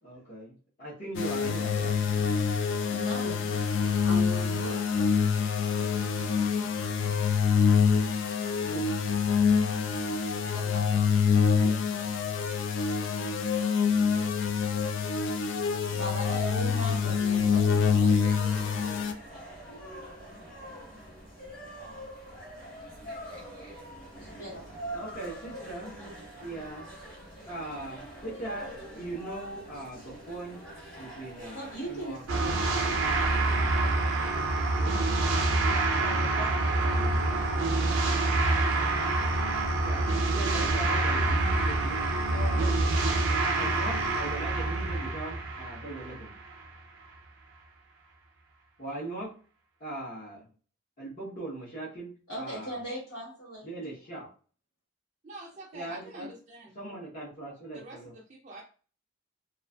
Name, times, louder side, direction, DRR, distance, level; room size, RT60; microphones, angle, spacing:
voice 1, 0.0-2.0 8.6-8.9 24.9-26.0 26.4-26.9 27.5-30.7 31.0-32.2 34.7-35.1 36.3-37.3 39.8-42.8 43.5-46.3 48.8-49.4 49.8-50.4 51.0-52.8 53.6-54.3 55.7-56.3 56.8-58.1, right 2 dB, 45° left, -6 dB, 0.9 m, -40 dB
sound 1, 1.1-19.1, left 6 dB, 70° left, 0.3 m, -26 dB
voice 2, 2.9-3.6 4.0-4.8 10.5-11.1 11.6-12.1 15.9-18.1 24.1-24.7 31.5-34.4 35.5-38.0 38.5-39.2 42.3-43.2 52.3-53.7, right 1 dB, 90° left, -9 dB, 1.3 m, -40 dB
sound 2, 15.8-34.6, right 1 dB, 25° left, 1.1 m, -45 dB
sound 3, 32.3-46.6, right 2 dB, 85° right, 0.5 m, -26 dB
voice 3, 55.2-56.8 57.7-58.6, right 2 dB, 35° right, -4 dB, 0.4 m, -46 dB
2.4 x 2.4 x 2.2 m, 0.38 s
head